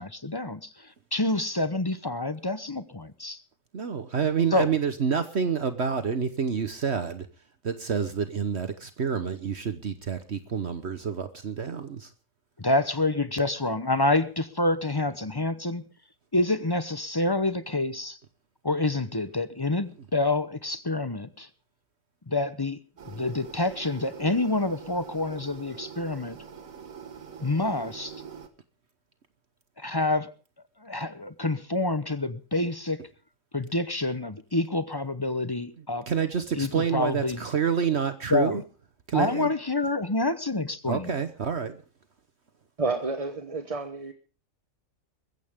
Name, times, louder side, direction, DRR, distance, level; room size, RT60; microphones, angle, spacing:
voice 1, 0.0-3.4 4.5-4.7 12.6-15.8 16.3-18.2 18.6-21.5 22.3-22.8 23.1-26.4 27.4-28.2 29.8-30.3 30.8-33.0 33.5-36.1 36.5-37.4 38.3-38.6 39.1-41.2, left 2 dB, 20° left, 13 dB, 0.7 m, -27 dB
voice 2, 3.7-7.3 7.6-12.1 36.1-38.6 39.1-39.5 40.9-41.8, right 7 dB, 55° right, 10 dB, 1.3 m, -28 dB
sound 1, 23.0-28.5, right 7 dB, 80° right, 2.0 m, -44 dB
voice 3, 42.8-44.1, right 3 dB, 30° right, 7 dB, 1.1 m, -30 dB
22.0 x 15.0 x 3.6 m, 0.36 s
omnidirectional pair, 1.4 m